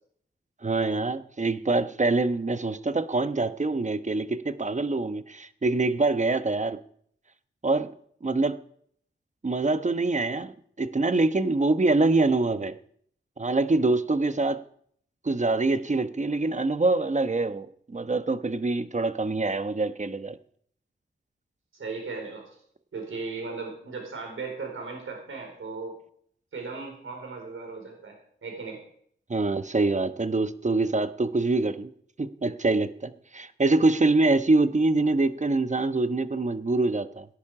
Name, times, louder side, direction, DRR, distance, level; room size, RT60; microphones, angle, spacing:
voice 1, 0.6-6.8 7.6-7.9 8.2-8.6 9.4-10.5 10.8-12.8 13.4-14.6 15.2-20.4 29.3-31.9 32.2-37.3, right 3 dB, 35° right, 11 dB, 1.1 m, -25 dB
voice 2, 21.7-22.4 22.9-25.9 26.5-28.1 28.4-28.8, right 4 dB, 85° right, 2 dB, 4.6 m, -36 dB
18.0 x 10.5 x 5.0 m, 0.64 s
cardioid pair, 55°, 20 cm